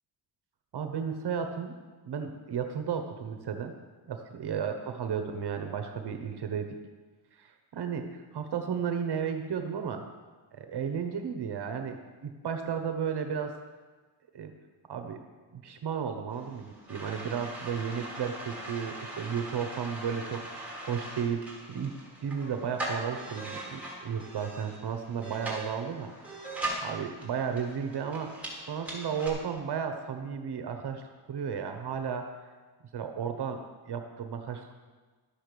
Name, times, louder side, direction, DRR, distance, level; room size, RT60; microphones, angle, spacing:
voice 1, 0.7-1.7 2.1-3.7 4.1-6.7 7.4-10.0 10.5-13.5 14.3-14.5 14.9-15.2 15.5-21.9 22.2-26.1 26.8-28.3 28.7-31.0 31.3-32.3 32.9-33.6 33.9-34.7, right 7 dB, 60° right, 6 dB, 1.1 m, -33 dB
sound 1, 16.3-29.3, right 1 dB, 5° right, 3.4 m, -40 dB
12.0 x 7.8 x 6.8 m, 1.4 s
cardioid pair, 120°, 45 cm